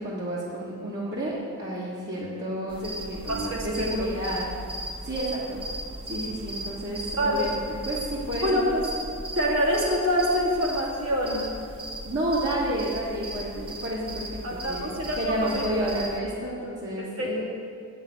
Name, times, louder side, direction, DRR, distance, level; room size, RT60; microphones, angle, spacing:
voice 1, 0.0-4.5 5.0-5.6 6.1-8.8 12.0-14.3 14.7-17.5, right 1 dB, 50° right, -7 dB, 1.7 m, -30 dB
sound 1, 2.7-16.2, equal, 25° right, 1.0 m, -37 dB
voice 2, 3.3-4.1 7.2-7.5 8.4-8.9 9.4-11.6 14.4-15.7 17.0-17.5, equal, 65° right, -3 dB, 2.3 m, -26 dB
8.7 x 7.1 x 8.2 m, 2.3 s
head